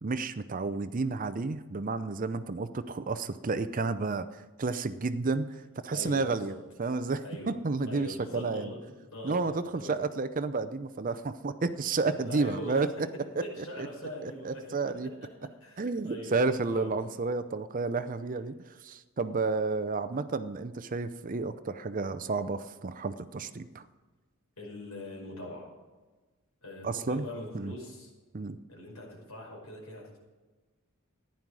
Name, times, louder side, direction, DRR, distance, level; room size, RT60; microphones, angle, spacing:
voice 1, 0.0-5.5 5.8-6.5 6.8-8.7 9.2-12.9 13.6-13.9 14.2-15.1 15.8-23.8 26.8-27.2 27.5-27.7 28.3-28.6, right 3 dB, 35° right, 12 dB, 0.5 m, -31 dB
voice 2, 5.9-6.6 7.2-7.5 7.9-9.9 12.0-12.8 13.4-14.7 15.6-16.9 24.6-25.7 26.6-28.1 28.7-30.2, left 1 dB, 80° left, -2 dB, 5.3 m, -42 dB
14.5 x 10.5 x 4.8 m, 1.3 s
head